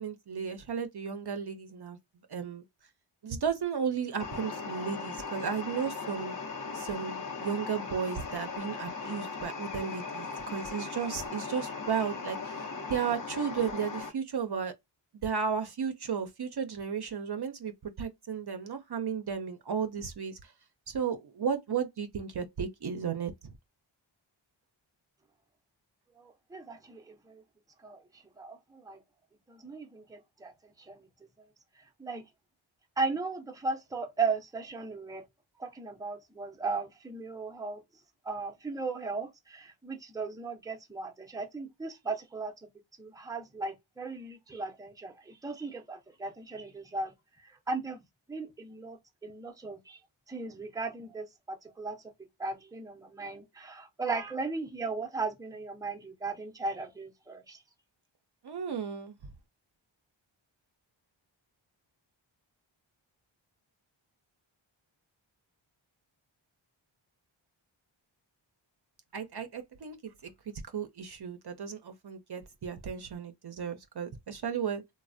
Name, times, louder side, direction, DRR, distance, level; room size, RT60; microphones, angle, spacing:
voice 1, 0.0-2.0 2.3-2.6 3.2-6.4 6.7-14.7 15.2-20.5 20.9-23.3 58.4-59.2 69.1-74.8, right 7 dB, 55° right, 0.5 m, -34 dB
sound 1, 4.2-14.1, left 4 dB, 40° left, 0.7 m, -38 dB
voice 2, 26.2-27.4 27.8-29.0 29.5-30.5 30.8-31.1 32.0-32.2 33.0-35.2 35.6-37.8 38.2-42.5 43.0-48.0 48.3-50.0 50.3-52.0 52.4-57.6, right 4 dB, 10° right, 0.6 m, -37 dB
3.2 x 2.0 x 2.5 m
wide cardioid pair, 60°, 49 cm